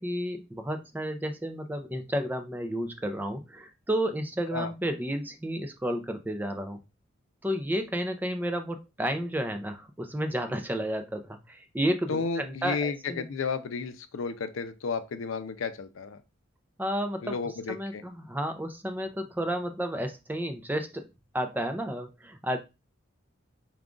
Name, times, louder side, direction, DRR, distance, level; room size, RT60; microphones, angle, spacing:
voice 1, 0.0-6.8 7.4-13.2 16.8-17.4 17.7-21.0 21.3-22.6, equal, 10° right, 0.4 m, -31 dB
voice 2, 12.1-16.2 17.2-18.0, left 5 dB, 75° left, 0.5 m, -32 dB
4.9 x 2.3 x 3.7 m
head